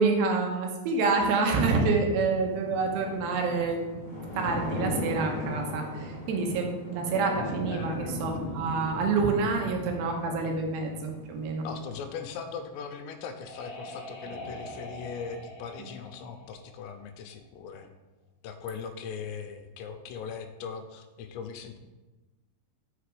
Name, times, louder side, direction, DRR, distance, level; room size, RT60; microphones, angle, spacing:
voice 1, 0.0-3.8 4.2-11.7 15.8-15.9, right 4 dB, 80° right, 2 dB, 3.1 m, -27 dB
sound 1, 2.3-12.0, left 1 dB, 5° left, 1.6 m, -37 dB
voice 2, 7.7-8.3 11.6-17.9 18.4-21.8, left 6 dB, 85° left, 7 dB, 2.8 m, -40 dB
sound 2, 12.9-17.4, left 1 dB, 65° left, 1.8 m, -44 dB
6.5 x 5.9 x 4.9 m, 1.1 s
omnidirectional pair, 5.0 m